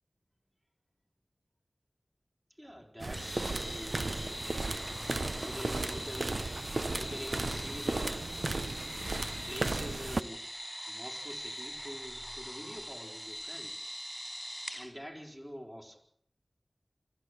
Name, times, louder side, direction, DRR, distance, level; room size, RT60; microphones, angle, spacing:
voice 1, 2.6-4.8 5.4-6.4 6.9-8.3 9.5-10.5 10.9-13.8 14.7-16.0, equal, 10° right, 1 dB, 4.9 m, -46 dB
sound 1, 3.0-10.2, right 2 dB, 70° right, 1.0 m, -35 dB
sound 2, 3.1-14.9, equal, 5° left, 4.5 m, -42 dB
27.0 x 12.0 x 8.2 m, 0.64 s
wide cardioid pair, 45°, 0 cm